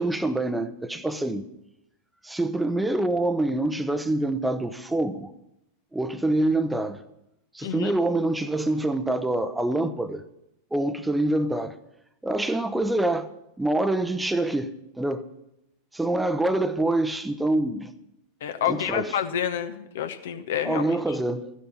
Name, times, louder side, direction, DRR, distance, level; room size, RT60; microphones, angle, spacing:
voice 1, 0.0-1.5 2.2-5.3 5.9-7.0 7.5-10.3 10.7-11.8 12.2-13.3 13.6-15.3 15.9-17.9 18.7-19.1 20.6-21.5, right 2 dB, 5° right, 0.8 m, -25 dB
voice 2, 7.6-7.9 18.4-21.2, left 9 dB, 55° left, 1.0 m, -29 dB
13.5 x 10.0 x 7.2 m
figure-of-eight pair, 90°, 0 cm